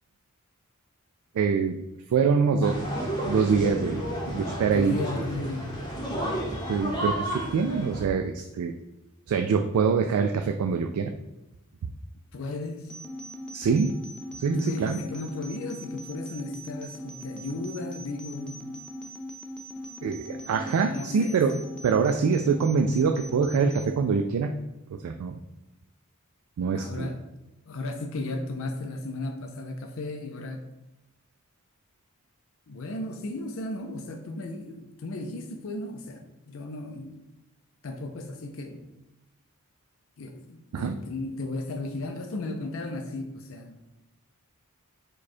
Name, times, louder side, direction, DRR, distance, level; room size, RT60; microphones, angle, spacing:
voice 1, 1.4-1.8 2.1-2.9 3.2-4.1 4.3-5.0 6.7-8.7 9.3-11.1 13.5-14.0 14.4-15.0 20.0-21.5 21.8-24.6 24.9-25.3 26.6-27.1 40.7-41.0, right 5 dB, 80° right, 6 dB, 0.3 m, -24 dB
sound 1, 2.6-8.0, equal, 20° left, 0.8 m, -32 dB
voice 2, 4.3-5.7 12.3-12.9 14.5-18.6 20.9-21.7 26.7-27.4 27.6-30.6 32.7-37.2 37.8-38.9 40.2-43.7, left 2 dB, 60° left, 4 dB, 0.5 m, -35 dB
sound 2, 12.9-23.9, left 1 dB, 5° left, 0.4 m, -40 dB
4.9 x 2.3 x 4.2 m, 0.94 s
head